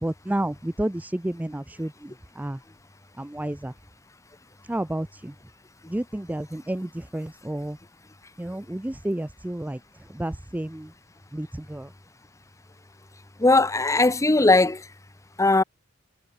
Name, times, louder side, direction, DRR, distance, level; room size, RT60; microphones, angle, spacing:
voice 1, 0.0-2.6 3.2-3.7 4.7-5.3 5.9-7.8 8.4-9.8 10.1-10.9 11.3-11.9, right 1 dB, 5° right, 0.4 m, -31 dB
voice 2, 13.4-14.8 15.4-15.6, left 2 dB, 15° left, 0.8 m, -18 dB
head